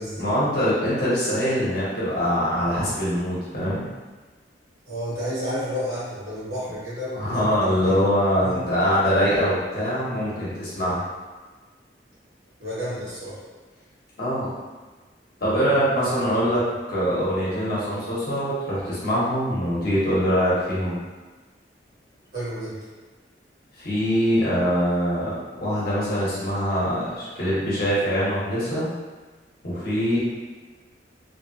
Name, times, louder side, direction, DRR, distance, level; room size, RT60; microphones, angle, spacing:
voice 1, 0.2-3.9 7.1-11.0 14.2-14.5 15.4-16.6 16.9-21.0 23.8-28.9 29.6-30.2, equal, 55° left, -9 dB, 1.1 m, -23 dB
voice 2, 4.8-8.1 8.4-8.6 12.6-13.4 22.3-22.8, equal, 60° right, -10 dB, 1.4 m, -31 dB
3.0 x 2.3 x 2.7 m, 1.3 s
head